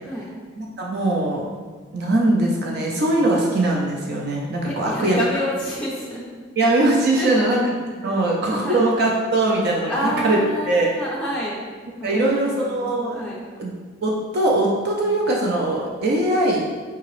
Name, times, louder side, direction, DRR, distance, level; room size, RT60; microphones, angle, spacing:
voice 1, 0.0-0.3 4.6-6.2 7.1-7.5 8.0-8.8 9.9-11.6 12.1-12.9 13.1-13.4, equal, 5° left, -7 dB, 0.5 m, -28 dB
voice 2, 0.6-1.4 1.9-5.2 6.6-10.4 10.7-10.9 12.0-13.3 13.6-13.7 14.0-16.6, right 2 dB, 55° right, -2 dB, 0.5 m, -21 dB
4.6 x 2.9 x 3.0 m, 1.5 s
head